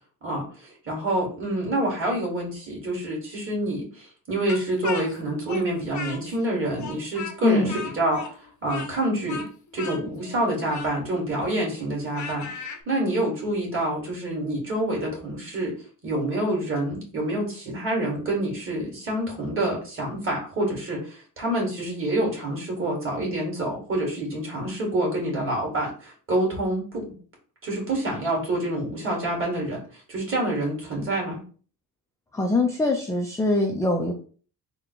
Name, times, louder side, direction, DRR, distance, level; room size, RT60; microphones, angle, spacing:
voice 1, 0.2-9.4 9.7-15.7 16.0-27.1 27.6-31.4, right 1 dB, 35° right, -2 dB, 2.0 m, -27 dB
Speech, 4.5-6.5 6.8-12.8, left 5 dB, 50° left, 0.7 m, -37 dB
voice 2, 7.4-7.8 32.3-34.1, left 2 dB, 10° left, 0 dB, 0.4 m, -23 dB
3.9 x 2.2 x 4.5 m, 0.41 s
cardioid pair, 155°, 37 cm